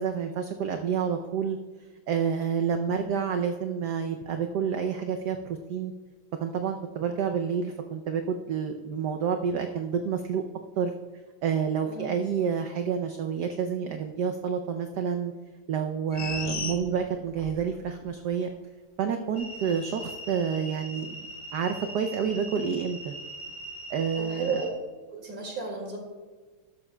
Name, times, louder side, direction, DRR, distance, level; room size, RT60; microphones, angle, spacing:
voice 1, 0.0-1.6 2.1-5.9 6.4-10.4 10.8-10.9 11.4-15.3 15.7-18.5 19.0-21.3 21.5-23.1 23.9-24.6, right 7 dB, 70° right, 5 dB, 1.0 m, -29 dB
voice 2, 11.9-12.2 24.2-24.7 25.1-26.0, right 4 dB, 45° right, 1 dB, 2.5 m, -33 dB
sound 1, 16.1-17.6 18.0-18.1, left 4 dB, 45° left, 0.6 m, -34 dB
sound 2, 19.3-24.7, right 1 dB, 25° left, 3.0 m, -41 dB
13.0 x 12.0 x 2.2 m, 1.4 s
omnidirectional pair, 2.3 m